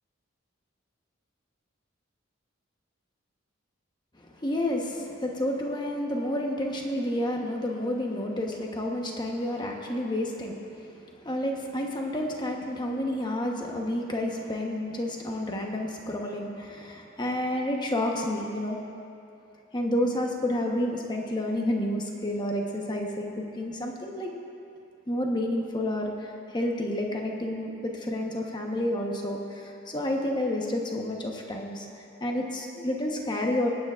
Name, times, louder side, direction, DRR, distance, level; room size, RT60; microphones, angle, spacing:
voice 1, 4.2-18.8 19.7-24.3 25.1-31.9 32.2-33.7, left 1 dB, 20° left, 0 dB, 1.1 m, -30 dB
25.5 x 9.1 x 2.5 m, 2.6 s
head